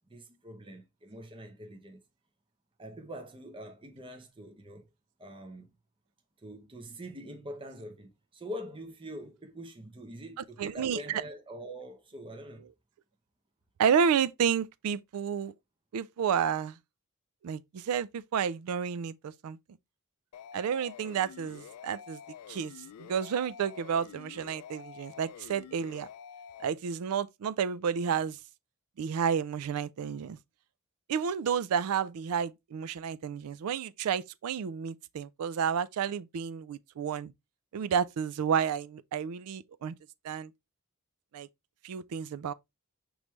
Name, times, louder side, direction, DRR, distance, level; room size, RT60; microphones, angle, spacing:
voice 1, 0.1-2.0 2.8-4.9 5.2-5.7 6.4-12.6, equal, 25° right, 0.8 m, -44 dB
voice 2, 10.6-11.2 13.8-15.5 15.9-16.8 17.4-19.6 20.5-22.2 22.5-26.1 26.6-28.4 29.0-30.4 31.1-37.3 37.7-39.9 40.2-40.5 41.3-41.5 41.8-42.5, right 7 dB, 80° right, 0.4 m, -31 dB
sound 1, 20.3-26.6, left 8 dB, 80° left, 0.3 m, -48 dB
5.2 x 3.2 x 3.2 m
head